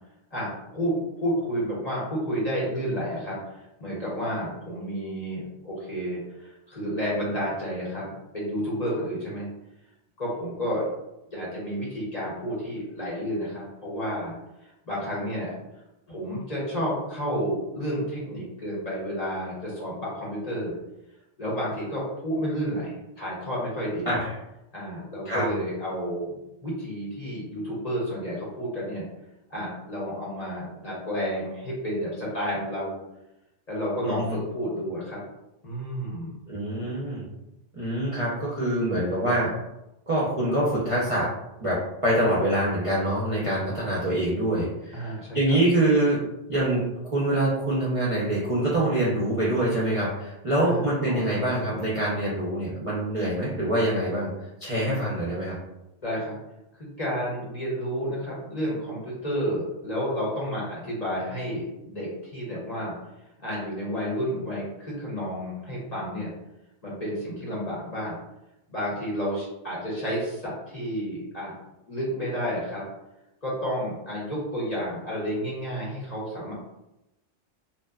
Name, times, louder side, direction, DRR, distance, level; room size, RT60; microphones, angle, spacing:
voice 1, 0.3-9.5 10.2-10.9 11.3-14.4 14.6-15.6 16.1-20.8 21.4-24.1 24.7-29.1 29.5-33.0 33.7-35.2 35.6-36.4 44.9-45.6 50.6-51.2 56.0-56.4 56.7-62.9 63.4-66.3 66.8-68.2 68.7-71.5 71.9-72.8 73.4-76.5, equal, 40° left, -6 dB, 0.7 m, -31 dB
voice 2, 34.0-34.3 36.5-37.2 37.7-39.5 40.1-41.3 41.6-46.2 46.5-54.3 54.6-55.6, right 1 dB, 40° right, -8 dB, 0.5 m, -25 dB
2.7 x 2.2 x 2.3 m, 0.92 s
omnidirectional pair, 1.2 m